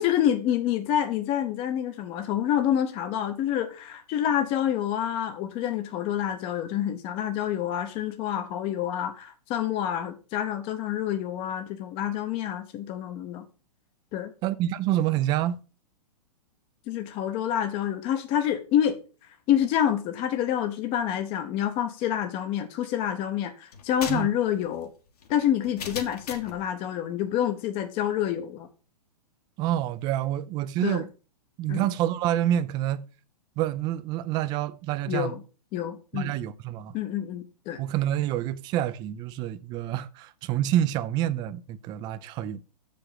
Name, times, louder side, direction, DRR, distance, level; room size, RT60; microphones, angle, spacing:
voice 1, 0.0-13.4 14.1-14.3 16.9-19.0 19.5-24.9 25.3-28.7 30.8-31.0 31.7-31.9 35.1-35.4 35.7-36.3 36.9-37.8, left 10 dB, 30° left, 0.7 m, -27 dB
voice 2, 14.4-15.6 24.1-24.3 29.6-31.1 31.6-33.1 33.6-35.3 36.1-37.0 37.8-42.6, right 12 dB, 20° right, 0.4 m, -27 dB
sound 1, 23.7-26.6, left 6 dB, 70° left, 1.6 m, -39 dB
6.3 x 5.1 x 5.6 m
hypercardioid pair, 140°, 20 cm